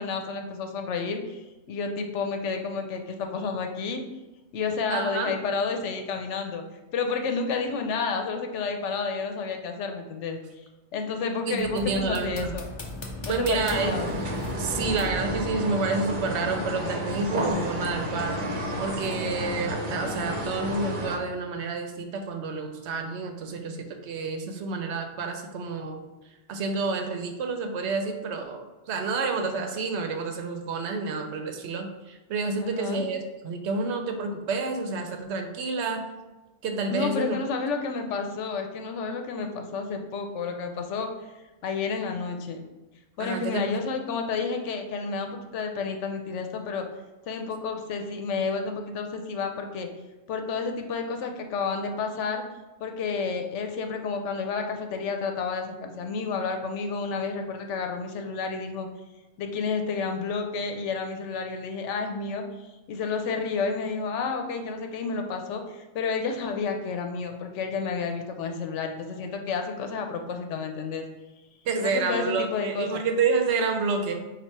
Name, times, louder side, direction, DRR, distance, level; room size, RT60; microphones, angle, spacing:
voice 1, 0.0-1.4 1.7-4.0 4.5-6.6 6.9-10.4 10.9-12.7 13.2-14.1 32.6-33.0 36.9-41.1 41.6-42.6 43.2-46.8 47.3-49.9 50.3-52.4 52.8-58.9 59.4-62.4 62.9-71.0 71.8-73.0, left 5 dB, 85° left, 4 dB, 0.9 m, -30 dB
voice 2, 4.9-5.3 11.5-12.5 13.3-14.0 14.6-26.0 26.5-36.1 36.6-37.4 43.2-43.7 71.7-74.2, right 4 dB, 75° right, 5 dB, 0.9 m, -29 dB
sound 1, 11.6-15.4, left 1 dB, 35° left, 0.5 m, -37 dB
sound 2, 13.7-21.2, equal, 50° right, 0.8 m, -31 dB
4.2 x 2.4 x 4.5 m, 1.1 s
omnidirectional pair, 1.2 m